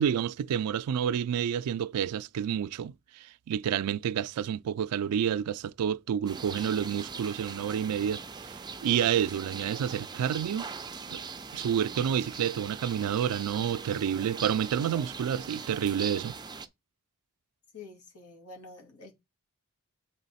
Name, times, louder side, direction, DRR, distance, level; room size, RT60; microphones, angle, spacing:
voice 1, 0.0-10.7 11.1-11.2 11.5-16.4, right 8 dB, 85° right, 0.3 m, -29 dB
sound 1, 6.3-16.7, right 5 dB, 20° right, 0.4 m, -41 dB
voice 2, 17.7-19.1, left 3 dB, 80° left, 2.4 m, -47 dB
8.0 x 3.8 x 4.1 m
head